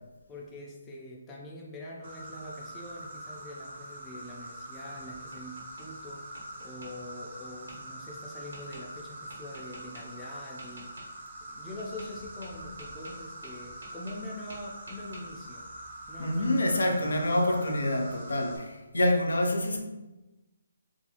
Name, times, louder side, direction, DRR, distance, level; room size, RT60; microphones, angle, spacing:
voice 1, 0.3-15.7 16.1-17.1, left 1 dB, 10° left, 0.3 m, -44 dB
Insect, 2.0-18.6, right 1 dB, 35° right, 0.6 m, -44 dB
Tap, 4.8-5.9 6.3-6.9 7.7-7.8 8.5-8.8 9.3-10.0 10.6-11.1 11.8-12.1 12.4-14.2 14.5-15.2, right 1 dB, 85° right, 1.1 m, -49 dB
voice 2, 16.2-19.8, left 1 dB, 90° left, 0.4 m, -27 dB
2.5 x 2.3 x 2.8 m
hypercardioid pair, 165°, 0 cm